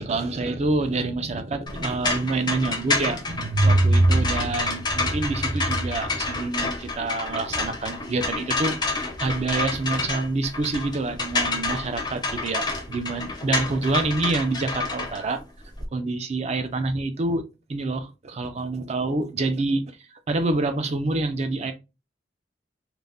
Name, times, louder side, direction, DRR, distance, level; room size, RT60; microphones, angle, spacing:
voice 1, 0.0-15.4 15.9-17.4 17.7-19.8 20.1-21.7, right 2 dB, 40° right, 0.4 m, -26 dB
sound 1, 1.7-15.9, left 3 dB, 25° left, 0.5 m, -29 dB
2.5 x 2.1 x 3.3 m
head